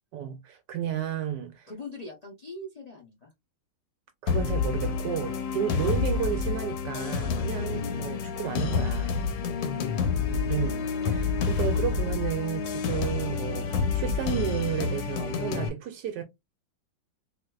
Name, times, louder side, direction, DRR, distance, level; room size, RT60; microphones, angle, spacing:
voice 1, 0.1-1.7 4.2-9.3 10.5-16.2, right 10 dB, 75° right, 1.2 m, -32 dB
voice 2, 1.7-3.3 5.7-6.1 7.7-8.0 9.8-10.7, left 3 dB, 60° left, 0.4 m, -42 dB
sound 1, 4.3-15.7, left 5 dB, 80° left, 1.4 m, -28 dB
4.1 x 2.5 x 2.3 m
omnidirectional pair, 2.0 m